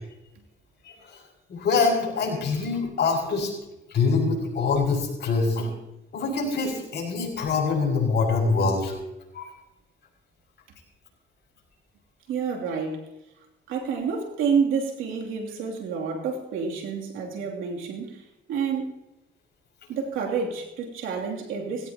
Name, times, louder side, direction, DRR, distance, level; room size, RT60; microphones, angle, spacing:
voice 1, 1.5-3.5 3.9-5.7 6.1-8.9 9.3-9.5, left 4 dB, 60° left, 6.4 m, -24 dB
voice 2, 12.3-13.1 13.7-18.9 19.9-21.9, right 6 dB, 90° right, 2.9 m, -29 dB
19.0 x 16.5 x 2.9 m
cardioid pair, 90°, 20 cm